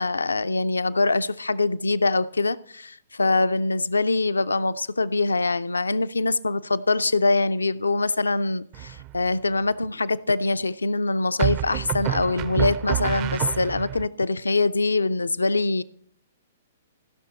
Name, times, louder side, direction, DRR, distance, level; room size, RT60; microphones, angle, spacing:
voice 1, 0.0-15.8, left 3 dB, 75° left, 0.4 m, -24 dB
sound 1, 8.7-9.3 11.4-14.1, right 14 dB, 30° right, 0.4 m, -28 dB
15.5 x 6.1 x 4.3 m
figure-of-eight pair, 115°, 0 cm